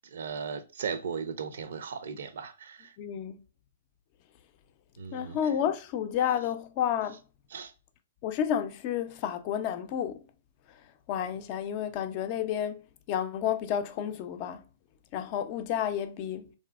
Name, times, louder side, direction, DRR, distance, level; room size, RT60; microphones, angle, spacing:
voice 1, 0.0-3.0 5.0-5.4 7.5-7.7, right 6 dB, 70° right, 0.5 m, -37 dB
voice 2, 3.0-3.4 5.1-7.2 8.2-10.2 10.7-10.8 11.1-12.8 13.1-14.7 15.1-16.5, left 9 dB, 40° left, 0.4 m, -31 dB
3.2 x 2.7 x 2.2 m
hypercardioid pair, 135°, 0 cm